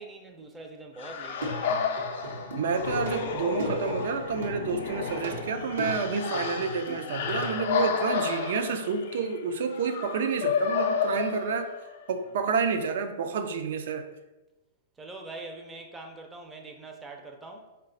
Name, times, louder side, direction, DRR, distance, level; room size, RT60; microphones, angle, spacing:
voice 1, 0.0-2.1 7.7-7.9 15.0-17.7, right 2 dB, 10° right, 2 dB, 0.5 m, -44 dB
sound 1, 1.0-12.0, left 5 dB, 65° left, 0.4 m, -31 dB
Plucked string instrument, 1.2-7.7, equal, 90° right, 0.8 m, -38 dB
voice 2, 2.6-11.7 12.1-14.1, right 5 dB, 70° right, 7 dB, 0.4 m, -29 dB
3.9 x 2.2 x 3.7 m, 1.1 s
hypercardioid pair, 145°, 0 cm